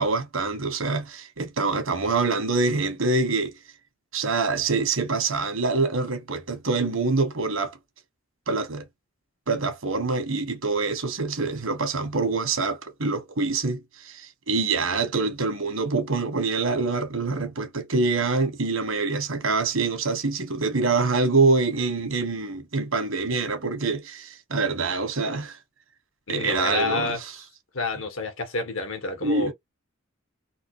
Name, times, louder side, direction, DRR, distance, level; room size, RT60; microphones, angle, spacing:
voice 1, 0.0-3.5 4.1-7.7 8.5-8.8 9.5-25.6 26.3-27.1 29.2-29.5, right 3 dB, 80° right, 1.4 m, -25 dB
voice 2, 26.3-27.2 27.7-29.5, left 3 dB, 75° left, 1.5 m, -29 dB
3.8 x 2.9 x 3.1 m
head